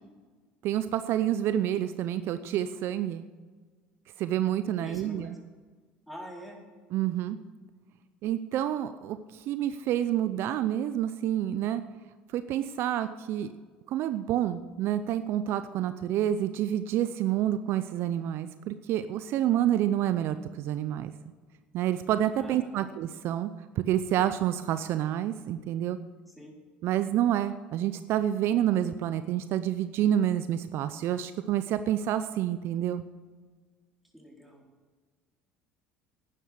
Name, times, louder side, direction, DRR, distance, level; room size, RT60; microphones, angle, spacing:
voice 1, 0.6-3.3 4.2-5.3 6.9-7.4 8.2-11.8 12.3-13.5 13.9-21.1 21.7-23.5 23.8-26.0 26.8-33.0, right 11 dB, 60° right, 12 dB, 0.6 m, -28 dB
voice 2, 4.8-5.4 6.1-6.6 22.4-22.9 26.4-26.5 34.1-34.7, equal, ahead, -1 dB, 4.3 m, -45 dB
11.0 x 10.0 x 6.5 m, 1.5 s
hypercardioid pair, 70°, 5 cm